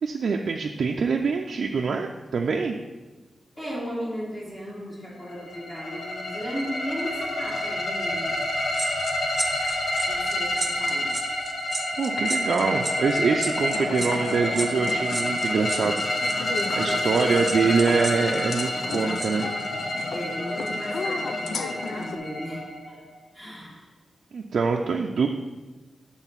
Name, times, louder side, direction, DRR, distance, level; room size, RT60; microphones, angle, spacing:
voice 1, 0.0-2.8 12.0-16.0 16.7-19.5 24.3-25.3, right 5 dB, 70° right, 1 dB, 0.4 m, -24 dB
voice 2, 3.6-8.5 10.1-11.2 20.1-23.0 23.3-23.9, equal, 20° left, -6 dB, 1.8 m, -36 dB
sound 1, 5.3-23.1, left 1 dB, 40° left, 1.0 m, -28 dB
sound 2, 8.7-19.3 19.6-19.8, right 2 dB, 20° right, 0.7 m, -34 dB
sound 3, 13.7-22.2, left 4 dB, 85° left, 0.5 m, -35 dB
8.0 x 3.9 x 5.7 m, 1.2 s
wide cardioid pair, 130°, 0 cm